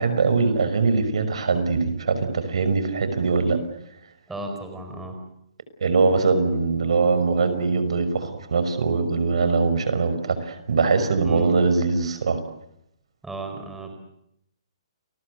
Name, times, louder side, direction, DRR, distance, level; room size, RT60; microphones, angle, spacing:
voice 1, 0.0-3.6 5.8-12.4, right 4 dB, 80° right, 12 dB, 5.7 m, -22 dB
voice 2, 4.3-5.2 11.2-11.5 13.2-13.9, right 2 dB, 5° right, 4 dB, 4.6 m, -34 dB
29.5 x 22.0 x 8.2 m, 0.77 s
hypercardioid pair, 170°, 3 cm